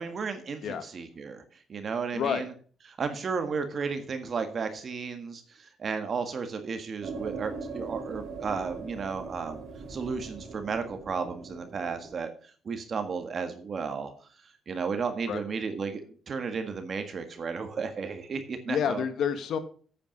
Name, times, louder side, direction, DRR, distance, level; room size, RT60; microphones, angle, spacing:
voice 1, 0.0-1.4 1.7-2.4 3.0-9.6 9.9-14.1 14.7-19.0, right 5 dB, 45° right, 8 dB, 1.6 m, -33 dB
sound 1, 7.0-12.1, right 4 dB, 65° right, 2.9 m, -40 dB
voice 2, 18.7-19.6, left 8 dB, 70° left, 10 dB, 1.5 m, -29 dB
8.6 x 8.5 x 6.4 m, 0.43 s
cardioid pair, 90°, 0 cm